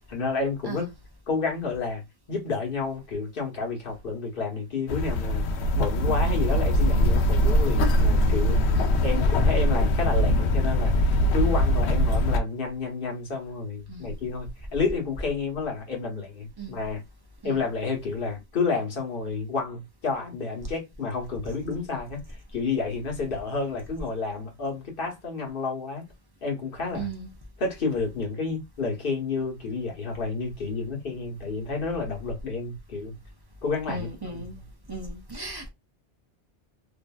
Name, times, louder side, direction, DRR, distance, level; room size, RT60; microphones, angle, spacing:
voice 1, 0.1-0.9 1.3-2.0 2.3-5.5 5.7-8.6 9.0-17.0 17.4-26.1 26.4-27.1 27.6-33.1 33.6-34.4, left 4 dB, 50° left, 1.1 m, -30 dB
sound 1, 4.9-12.4, left 1 dB, 70° left, 0.8 m, -22 dB
voice 2, 13.9-14.2 16.6-16.8 17.4-17.6 26.9-27.3 33.9-34.6 34.9-35.7, right 3 dB, 40° right, 0.3 m, -36 dB
2.7 x 2.5 x 2.2 m
omnidirectional pair, 1.2 m